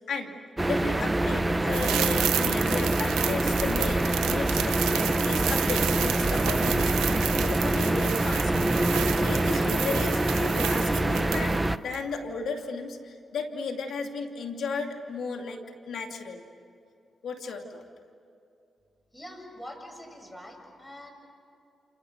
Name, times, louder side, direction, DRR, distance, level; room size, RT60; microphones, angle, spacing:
sound 1, 0.6-11.8, right 1 dB, 20° right, 1.0 m, -25 dB
voice 1, 0.7-6.9 7.4-8.8 9.1-16.4 17.2-17.8, left 4 dB, 75° left, 3 dB, 2.7 m, -35 dB
sound 2, 1.7-11.7 11.9-12.0, right 11 dB, 90° right, 0.8 m, -32 dB
voice 2, 19.1-21.1, equal, 15° left, 3 dB, 7.6 m, -44 dB
29.5 x 28.0 x 6.7 m, 2.6 s
supercardioid pair, 50°, 0 cm